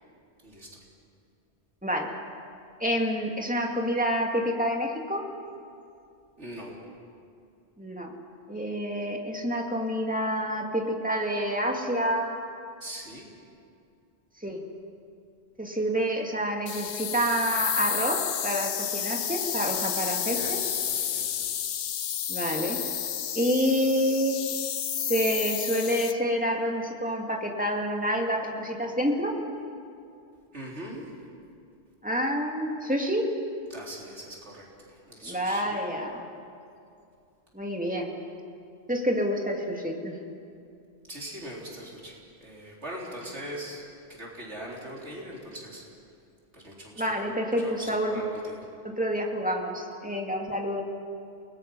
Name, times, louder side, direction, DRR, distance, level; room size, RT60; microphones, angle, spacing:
voice 1, 1.8-2.1 2.8-5.2 7.8-8.1 8.5-12.4 14.4-14.6 15.6-20.6 22.3-22.8 23.3-24.4 25.0-29.4 32.0-33.3 35.2-36.3 37.5-38.1 38.9-40.2 47.0-48.2 48.8-50.8, equal, 5° right, 0 dB, 2.4 m, -28 dB
voice 2, 6.4-6.8 12.8-13.2 19.8-21.5 30.5-31.0 33.7-35.8 41.1-43.8 44.1-45.8 46.5-47.2 47.6-48.7, right 1 dB, 80° right, -3 dB, 4.1 m, -41 dB
sound 1, 16.7-26.1, left 9 dB, 65° left, 0.9 m, -31 dB
29.5 x 19.5 x 5.5 m, 2.5 s
omnidirectional pair, 1.2 m